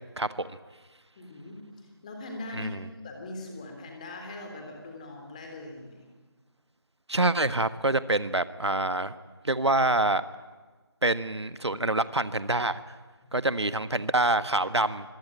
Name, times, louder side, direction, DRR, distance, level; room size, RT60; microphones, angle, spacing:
voice 1, 0.2-0.6 2.6-2.8 7.1-9.1 9.4-10.2 11.0-13.0 13.3-15.1, right 2 dB, 85° right, 13 dB, 1.5 m, -26 dB
voice 2, 1.2-2.8 3.0-6.1 13.2-13.3, left 2 dB, 15° left, 3 dB, 3.6 m, -41 dB
25.5 x 23.0 x 9.0 m, 1.3 s
figure-of-eight pair, 170°, 14 cm